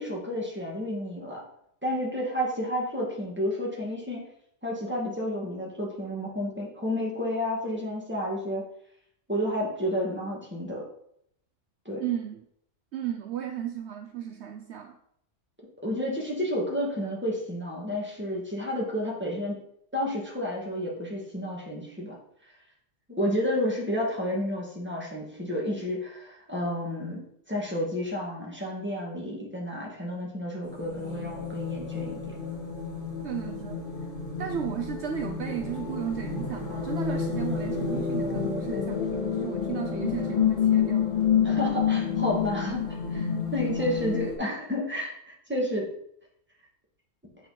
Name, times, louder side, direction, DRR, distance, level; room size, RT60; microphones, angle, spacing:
voice 1, 0.0-1.4 1.8-4.2 4.6-8.6 9.3-10.8 11.9-12.0 15.8-19.6 19.9-22.2 23.1-27.2 27.5-32.3 41.4-45.1 45.5-45.9, left 1 dB, 10° right, -3 dB, 2.3 m, -31 dB
voice 2, 12.0-12.5 12.9-15.0 33.2-33.9 34.4-41.1, right 9 dB, 70° right, 6 dB, 0.9 m, -34 dB
sound 1, 30.6-44.3, left 7 dB, 45° left, 3.2 m, -29 dB
7.7 x 6.2 x 4.4 m, 0.72 s
omnidirectional pair, 1.3 m